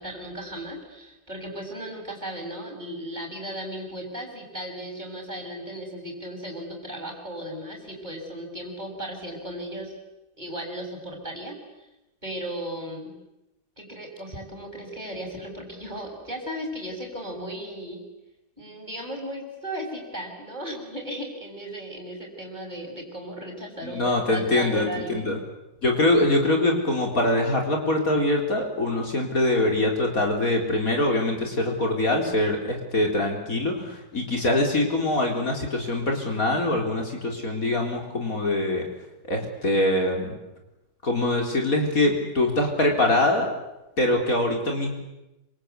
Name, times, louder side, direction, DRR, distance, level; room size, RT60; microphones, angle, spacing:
voice 1, 0.0-9.9 10.4-11.6 12.2-13.1 13.8-18.0 18.6-25.3, right 1 dB, 25° right, 1 dB, 6.9 m, -36 dB
voice 2, 23.8-25.4 25.8-38.8 39.3-40.3 41.0-43.5 44.0-44.9, left 1 dB, 55° left, 2 dB, 4.4 m, -23 dB
27.5 x 26.0 x 8.3 m, 0.95 s
omnidirectional pair, 1.7 m